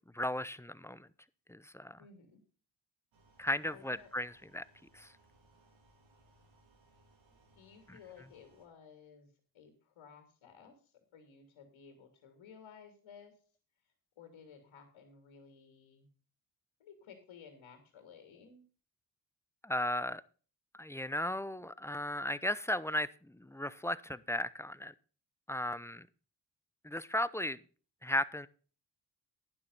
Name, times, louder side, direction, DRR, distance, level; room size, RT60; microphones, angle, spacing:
voice 1, 0.1-1.1 1.5-2.0 3.4-4.6 4.9-5.1 7.9-8.0 19.6-20.2 20.7-24.9 25.5-26.1 26.8-27.6 28.0-28.5, left 1 dB, 5° left, 17 dB, 0.8 m, -36 dB
voice 2, 2.0-2.4 3.7-4.1 7.6-9.3 9.5-13.3 14.2-16.1 16.8-18.6, left 6 dB, 70° left, 5 dB, 3.0 m, -56 dB
sound 1, 3.1-8.7, right 2 dB, 65° right, 3.4 m, -67 dB
11.5 x 9.8 x 4.1 m, 0.39 s
hypercardioid pair, 40°, 49 cm